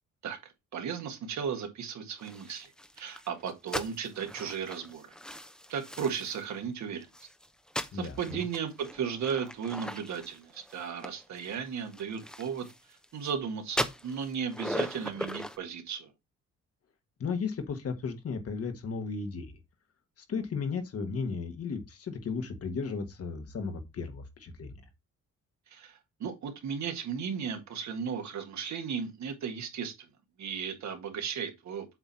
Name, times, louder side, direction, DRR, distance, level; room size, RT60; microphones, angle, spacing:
voice 1, 0.2-5.1 5.7-7.1 7.9-12.7 13.1-16.1 25.7-30.1 30.4-31.9, right 7 dB, 65° right, 1.7 m, -35 dB
sound 1, 2.2-6.6 7.0-13.3 13.7-15.6, equal, 5° left, 0.8 m, -39 dB
voice 2, 7.9-8.4 17.2-19.5 20.2-24.8, left 5 dB, 50° left, 1.5 m, -35 dB
8.0 x 3.0 x 5.5 m
cardioid pair, 90°, 30 cm